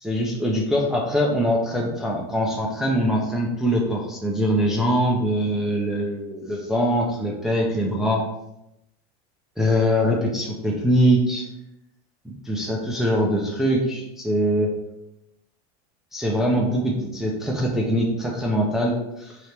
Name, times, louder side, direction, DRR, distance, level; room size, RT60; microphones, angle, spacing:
voice 1, 0.0-8.3 9.6-11.4 12.2-14.7 16.1-19.4, equal, ahead, -3 dB, 0.3 m, -23 dB
3.3 x 2.8 x 4.2 m, 0.86 s
supercardioid pair, 160°, 20 cm